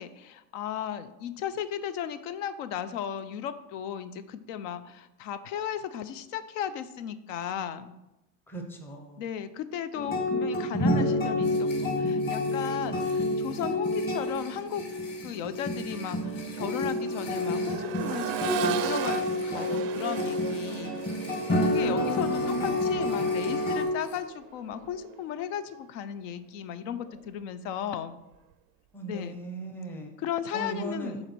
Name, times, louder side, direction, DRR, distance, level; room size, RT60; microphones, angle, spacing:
voice 1, 0.0-7.9 9.2-14.8 15.2-21.0 21.3-28.2 29.1-29.4 30.2-31.2, left 9 dB, 75° left, 12 dB, 0.7 m, -35 dB
voice 2, 8.5-9.3 21.7-22.8 28.9-30.1 30.5-31.2, right 1 dB, 5° left, 2 dB, 0.6 m, -37 dB
sound 1, 9.9-23.8, left 1 dB, 25° left, 1.5 m, -29 dB
sound 2, 11.4-24.2, left 4 dB, 45° left, 2.5 m, -49 dB
Accelerating revving vroom, 14.8-15.0 15.4-25.3 27.0-27.1, right 8 dB, 35° right, 0.4 m, -37 dB
8.0 x 4.2 x 6.1 m, 0.94 s
cardioid pair, 170°, 38 cm